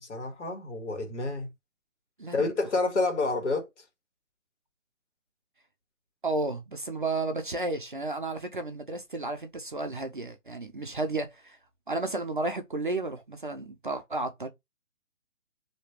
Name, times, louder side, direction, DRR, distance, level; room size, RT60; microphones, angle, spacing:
voice 1, 0.0-1.5 2.3-3.7, left 3 dB, 60° left, 1.7 m, -29 dB
voice 2, 6.2-11.6 11.9-14.5, right 2 dB, 40° right, 0.5 m, -32 dB
3.2 x 2.9 x 2.8 m
hypercardioid pair, 165°, 40 cm